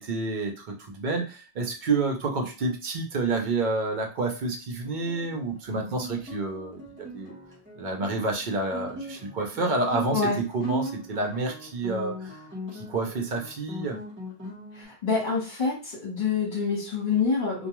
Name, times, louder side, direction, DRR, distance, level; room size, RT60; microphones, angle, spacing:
voice 1, 0.0-7.4 7.8-12.4 12.7-14.0, right 3 dB, 55° right, 1 dB, 0.6 m, -29 dB
Guitar, 4.8-14.8, right 1 dB, 10° right, 0.9 m, -39 dB
voice 2, 14.7-17.7, left 5 dB, 50° left, -4 dB, 1.1 m, -26 dB
2.2 x 2.2 x 2.9 m, 0.34 s
omnidirectional pair, 1.1 m